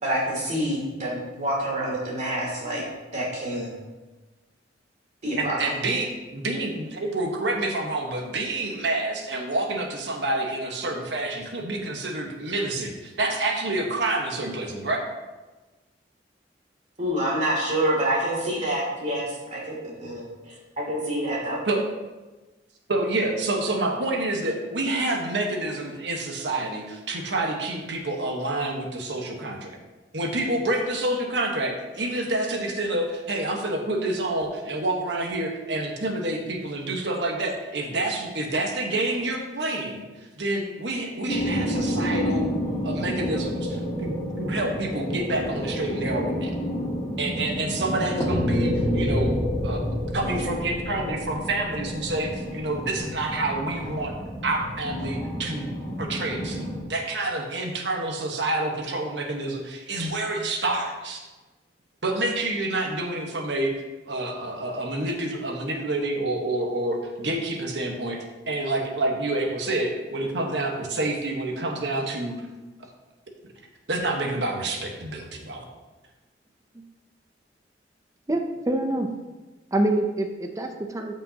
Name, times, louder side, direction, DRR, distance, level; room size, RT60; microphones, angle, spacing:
voice 1, 0.0-2.8 3.1-3.7 5.2-5.7 17.0-19.2 19.5-21.6, right 1 dB, 40° right, -4 dB, 2.7 m, -27 dB
voice 2, 5.4-15.0 21.7-21.9 22.9-29.8 30.1-40.1 40.4-42.5 42.8-46.6 47.2-49.3 49.6-49.8 50.1-54.1 54.4-55.7 56.0-56.6 56.9-61.2 62.0-63.7 64.1-72.3 73.9-75.6, right 2 dB, 70° right, 2 dB, 1.3 m, -28 dB
sound 1, 41.3-56.8, equal, 20° left, 1.7 m, -29 dB
voice 3, 78.3-79.1 79.7-81.1, right 1 dB, 20° right, 4 dB, 0.6 m, -25 dB
14.0 x 5.3 x 2.9 m, 1.2 s
head